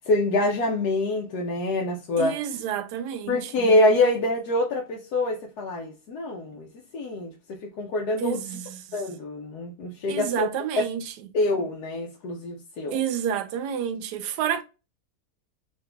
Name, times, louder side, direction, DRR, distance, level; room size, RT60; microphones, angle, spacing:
voice 1, 0.1-2.3 3.3-6.7 6.9-8.4 8.9-10.5 10.8-10.9 11.3-13.0, left 2 dB, 75° left, 1.3 m, -25 dB
voice 2, 2.2-3.7 8.2-9.0 10.1-11.1 12.9-14.6, right 9 dB, 90° right, 1.2 m, -29 dB
4.0 x 2.7 x 3.2 m
omnidirectional pair, 1.7 m